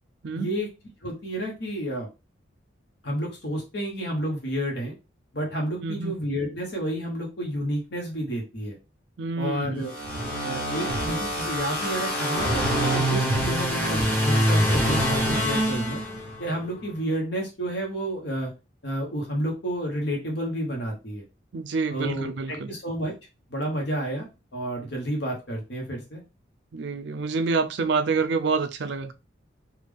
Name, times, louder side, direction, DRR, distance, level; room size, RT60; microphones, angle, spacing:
voice 1, 0.3-0.7 1.0-2.1 3.0-4.9 5.3-8.8 9.4-9.9 10.4-16.0 16.4-18.5 18.8-21.2 21.9-23.1 23.5-24.3 24.5-26.2, equal, 60° left, 1.0 m, -30 dB
voice 2, 5.8-6.1 9.2-9.9 21.5-22.7 26.7-29.1, right 4 dB, 60° right, 0.4 m, -27 dB
sound 1, 9.9-16.5, equal, 10° left, 1.3 m, -25 dB
3.5 x 2.3 x 3.4 m
head